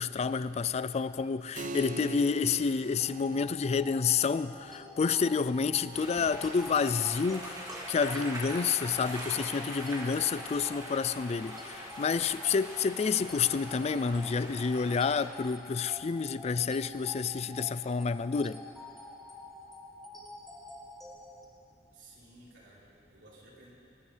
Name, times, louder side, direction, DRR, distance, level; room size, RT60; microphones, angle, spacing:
voice 1, 0.0-18.6, left 5 dB, 35° left, 14 dB, 0.3 m, -29 dB
Keyboard (musical), 1.6-11.8, right 2 dB, 45° right, 0.7 m, -47 dB
sound 1, 3.0-21.4, left 2 dB, ahead, 1.6 m, -48 dB
sound 2, 5.9-15.3, right 1 dB, 20° right, 2.5 m, -43 dB
voice 2, 21.9-23.7, right 2 dB, 80° right, -6 dB, 4.1 m, -56 dB
25.0 x 13.5 x 3.3 m, 2.7 s
head